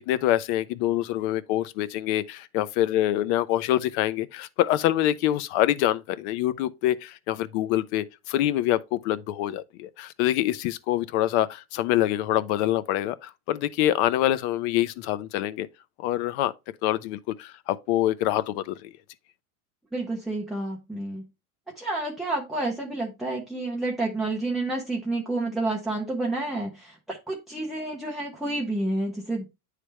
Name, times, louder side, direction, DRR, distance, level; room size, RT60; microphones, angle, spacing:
voice 1, 0.1-15.7 16.0-16.5 16.8-18.9, left 13 dB, 50° left, 0.6 m, -25 dB
voice 2, 19.9-21.2 21.8-29.5, right 2 dB, ahead, 0.4 m, -29 dB
9.7 x 3.3 x 3.1 m
supercardioid pair, 140°, 45 cm